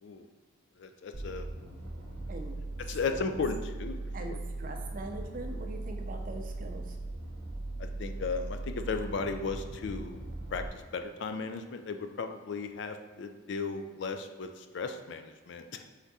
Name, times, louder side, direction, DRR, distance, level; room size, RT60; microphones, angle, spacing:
voice 1, 0.8-1.5 2.9-4.4 7.8-10.2 10.5-15.8, left 4 dB, 65° left, 7 dB, 0.4 m, -36 dB
sound 1, 1.1-10.7, right 2 dB, 75° right, 0.9 m, -39 dB
voice 2, 2.3-2.6 3.1-3.2 4.1-7.0, right 2 dB, 45° right, 3 dB, 0.5 m, -42 dB
3.6 x 3.5 x 4.1 m, 1.4 s
head